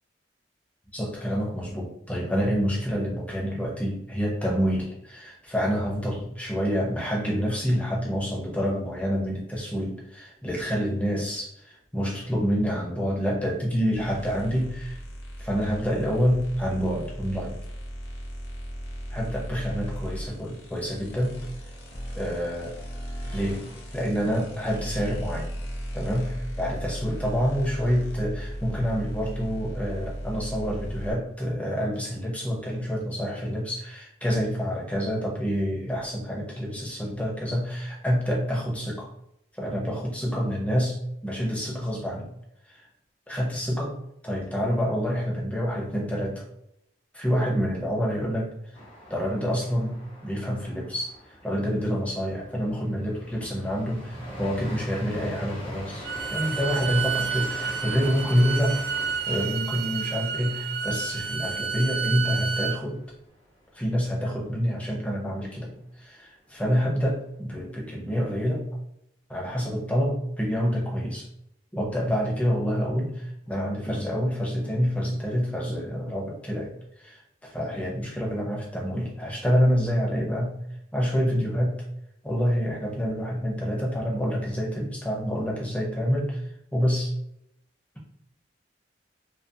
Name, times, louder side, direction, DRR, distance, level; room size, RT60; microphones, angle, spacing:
voice 1, 0.9-15.0 15.4-17.6 19.1-21.4 22.1-22.8 23.3-25.5 25.9-39.1 39.6-42.3 42.7-42.8 43.3-44.0 44.2-46.4 47.1-48.5 49.1-51.1 51.4-58.8 59.1-63.0 63.7-68.6 69.3-71.3 71.7-76.7 77.0-80.6 80.9-81.8 82.2-86.4 86.7-87.1, equal, 10° left, -2 dB, 0.5 m, -27 dB
sound 1, 13.9-31.1, equal, 65° left, 0.7 m, -37 dB
sound 2, 48.7-62.5 62.8-62.9 63.3-63.8, equal, 30° left, 0.8 m, -43 dB
Bowed string instrument, 56.0-62.8, right 7 dB, 60° right, 0.3 m, -30 dB
2.4 x 2.4 x 2.6 m, 0.78 s
head